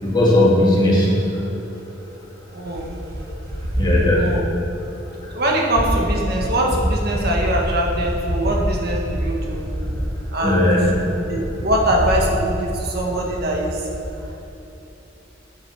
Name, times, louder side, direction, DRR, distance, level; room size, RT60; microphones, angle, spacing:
voice 1, 0.0-1.5 3.7-4.3 4.7-4.8 5.2-5.3 10.4-10.9, left 1 dB, 25° left, -5 dB, 2.3 m, -17 dB
voice 2, 2.5-2.9 3.7-4.5 5.3-10.0 10.3-10.9 11.3-13.9, right 1 dB, 55° right, -1 dB, 1.7 m, -21 dB
8.9 x 7.9 x 6.3 m, 3.0 s
head